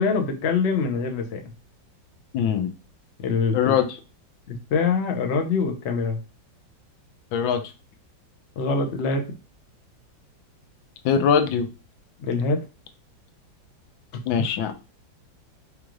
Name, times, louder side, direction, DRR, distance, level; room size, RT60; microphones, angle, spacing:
voice 1, 0.0-1.4 3.2-3.7 4.5-6.2 8.6-9.2 12.2-12.6, left 4 dB, 55° left, 4 dB, 0.7 m, -24 dB
voice 2, 2.3-2.7 3.5-3.9 7.3-7.6 11.0-11.7 14.3-14.7, left 7 dB, 80° left, 6 dB, 1.4 m, -21 dB
5.0 x 2.4 x 3.0 m, 0.31 s
omnidirectional pair, 2.1 m